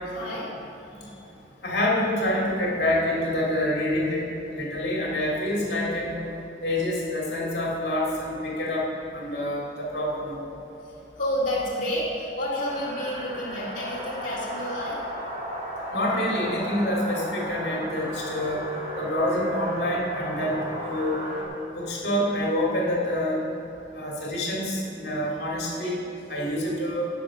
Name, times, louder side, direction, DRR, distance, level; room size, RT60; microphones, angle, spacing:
voice 1, 0.1-1.2 5.5-5.8 10.8-15.0 21.8-22.1, equal, 45° left, -8 dB, 2.1 m, -31 dB
voice 2, 1.6-4.3 4.5-6.2 6.6-8.8 9.1-10.5 15.9-18.6 19.0-21.2 21.7-23.4 23.9-26.0 26.3-27.1, left 1 dB, 65° left, -3 dB, 2.4 m, -27 dB
sound 1, 12.6-21.4, equal, 35° right, 2.5 m, -34 dB
16.0 x 5.6 x 6.1 m, 3.0 s
head